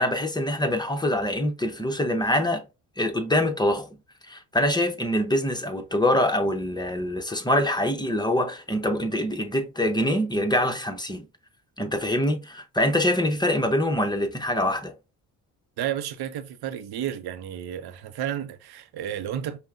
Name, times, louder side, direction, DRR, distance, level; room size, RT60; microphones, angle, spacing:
voice 1, 0.0-2.6 3.0-3.9 4.2-11.2 11.8-14.9, left 1 dB, 10° left, 0.8 m, -24 dB
voice 2, 15.8-19.6, right 10 dB, 65° right, 0.6 m, -32 dB
5.4 x 2.2 x 2.5 m
supercardioid pair, 65°, 40 cm